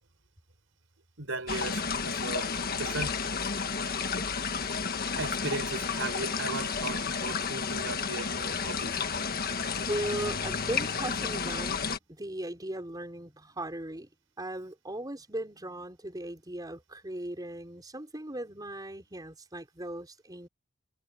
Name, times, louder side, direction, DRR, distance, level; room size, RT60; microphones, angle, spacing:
voice 1, 1.2-3.2 5.1-9.0, right 3 dB, 70° right, 6.1 m, -37 dB
sound 1, 1.5-12.0, left 5 dB, 50° left, 1.5 m, -32 dB
voice 2, 9.5-14.1 14.4-20.5, right 1 dB, 20° right, 4.7 m, -38 dB
head